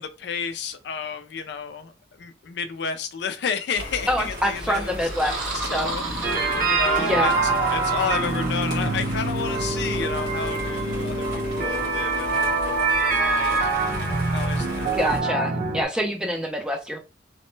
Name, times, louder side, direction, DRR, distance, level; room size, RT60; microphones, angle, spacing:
voice 1, 0.0-4.9 5.2-6.0 6.3-7.3 7.7-13.7 14.0-14.9, left 6 dB, 60° left, 0.4 m, -32 dB
sound 1, 3.7-15.2, left 1 dB, 65° right, 1.4 m, -36 dB
voice 2, 4.1-5.9 7.0-7.3 14.9-17.0, equal, 5° right, 0.4 m, -26 dB
sound 2, 5.0-7.3, right 2 dB, 85° right, 1.1 m, -32 dB
sound 3, 6.2-15.8, right 3 dB, 50° right, 0.8 m, -24 dB
3.0 x 2.1 x 3.1 m
head